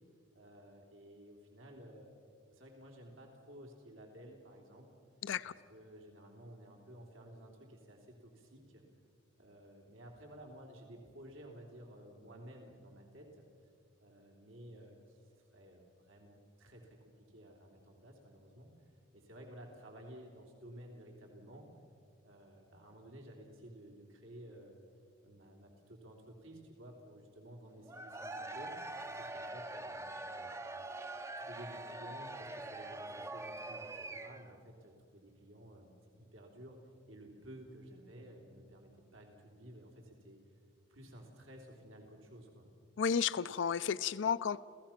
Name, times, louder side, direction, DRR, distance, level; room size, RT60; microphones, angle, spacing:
voice 1, 0.3-2.1 2.5-4.9 5.5-8.8 9.4-13.4 14.0-15.2 15.5-21.7 22.2-24.8 25.2-28.8 29.1-30.5 31.4-36.8 37.1-40.4 40.9-42.7, right 1 dB, 85° right, 1 dB, 3.3 m, -54 dB
voice 2, 5.2-5.5 43.0-44.6, left 7 dB, 65° left, 16 dB, 0.4 m, -32 dB
Cheering / Crowd, 27.8-34.6, right 2 dB, 15° right, 0.5 m, -44 dB
30.0 x 16.0 x 5.9 m, 2.3 s
head